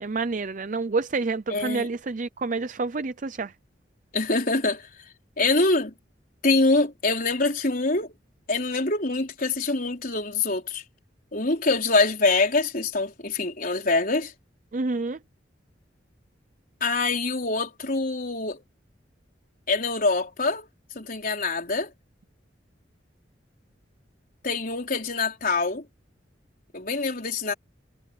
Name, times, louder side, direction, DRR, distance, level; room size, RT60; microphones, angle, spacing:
voice 1, 0.0-3.5 14.7-15.2, right 3 dB, 45° right, 0.6 m, -28 dB
voice 2, 1.5-1.9 4.1-4.9 5.4-5.9 6.4-8.1 8.5-10.8 11.3-14.3 16.8-18.6 19.7-20.7 20.9-21.9 24.4-25.8 26.7-27.5, left 3 dB, 50° left, 4.7 m, -24 dB
head